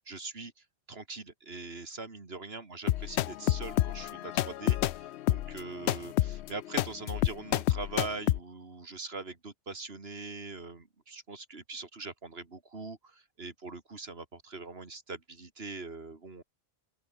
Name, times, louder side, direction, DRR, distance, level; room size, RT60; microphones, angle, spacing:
voice 1, 0.1-16.4, right 3 dB, 70° right, 2.7 m, -42 dB
sound 1, 2.9-8.4, left 13 dB, 85° left, 0.8 m, -29 dB
open air
omnidirectional pair, 1.1 m